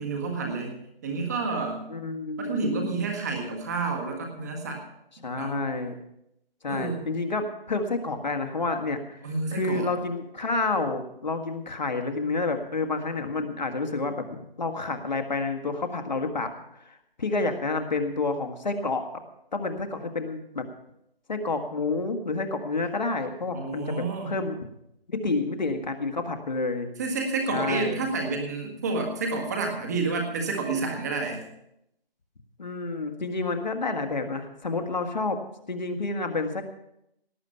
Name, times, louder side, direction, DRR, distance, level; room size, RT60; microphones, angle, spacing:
voice 1, 0.0-1.9 2.4-4.8 5.3-5.7 6.7-7.0 9.2-9.9 23.5-24.4 27.0-31.4, right 3 dB, 15° right, 3 dB, 1.6 m, -29 dB
voice 2, 1.9-3.0 5.2-6.0 6.6-9.2 9.5-16.5 16.8-19.2 19.5-20.7 21.3-24.6 25.1-26.9 27.5-28.0 32.6-35.4 35.7-36.6, left 3 dB, 45° left, 6 dB, 1.7 m, -29 dB
18.0 x 8.1 x 5.7 m, 0.81 s
figure-of-eight pair, 160°, 30 cm